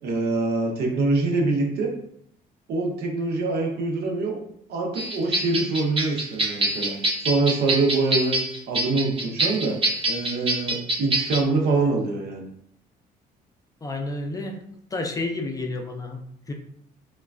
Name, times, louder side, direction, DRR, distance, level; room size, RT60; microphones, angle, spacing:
voice 1, 0.0-1.9 2.7-4.4 4.7-8.4 8.7-9.8 10.1-12.5, right 3 dB, 70° right, 0 dB, 0.7 m, -24 dB
sound 1, 5.0-11.4, right 2 dB, 35° right, 0.5 m, -26 dB
voice 2, 13.8-14.6 14.9-16.5, left 2 dB, 20° left, 2 dB, 0.4 m, -30 dB
3.0 x 2.2 x 2.4 m, 0.71 s
cardioid pair, 110°, 17 cm